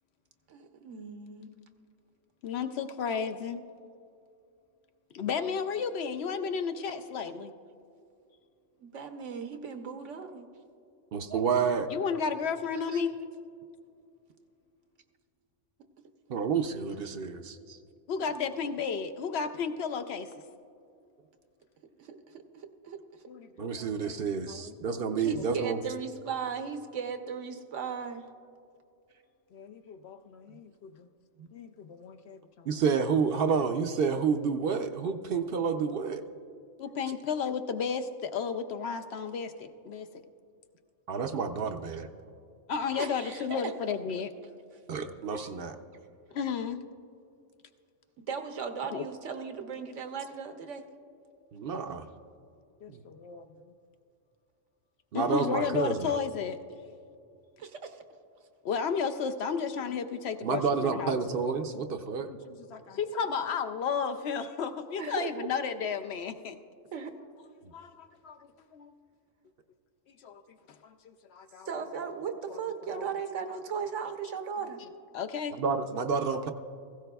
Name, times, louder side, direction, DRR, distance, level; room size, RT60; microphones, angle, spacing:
voice 1, 0.5-1.5 8.8-10.5 12.9-13.1 17.7-17.8 18.2-18.5 22.0-23.2 25.2-28.2 42.9-43.7 45.3-45.5 45.9-46.0 48.3-50.8 57.6-58.0 65.0-65.5 66.9-67.1 71.6-74.8, right 6 dB, 80° right, 6 dB, 1.2 m, -37 dB
voice 2, 2.4-3.6 5.1-7.5 11.9-13.2 18.1-20.3 23.3-25.2 29.5-31.1 31.5-32.8 36.8-40.1 42.7-44.3 45.0-45.2 46.3-46.8 48.9-49.0 52.8-53.5 55.1-56.6 58.6-61.8 62.2-66.6 67.7-68.4 68.7-68.9 70.2-70.4 70.8-71.7 72.5-72.6 72.9-73.0 75.1-75.6, left 6 dB, 65° left, 8 dB, 0.8 m, -33 dB
voice 3, 11.1-11.9 16.3-17.6 23.6-25.8 31.4-31.5 32.7-36.2 41.1-42.1 44.9-45.8 51.5-52.1 55.1-56.1 60.4-62.3 75.6-76.5, right 5 dB, 60° right, 8 dB, 0.7 m, -29 dB
17.0 x 15.5 x 2.3 m, 2.5 s
omnidirectional pair, 1.3 m